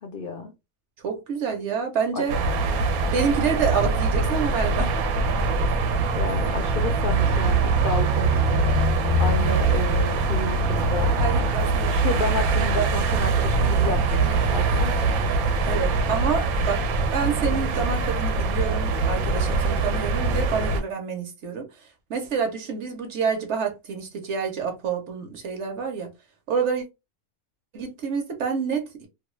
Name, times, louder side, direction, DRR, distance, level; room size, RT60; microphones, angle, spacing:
voice 1, 0.0-0.5 2.1-2.3 6.1-8.7 9.2-11.2 11.8-15.1, left 3 dB, 75° left, 0.5 m, -31 dB
voice 2, 1.0-2.3 3.0-4.9 11.0-12.0 15.7-16.8 17.1-21.7 22.1-26.1 26.5-26.8 27.7-29.1, right 6 dB, 60° right, 0.9 m, -28 dB
sound 1, 2.3-20.8, right 3 dB, 85° right, 1.1 m, -23 dB
2.6 x 2.2 x 3.0 m
omnidirectional pair, 1.5 m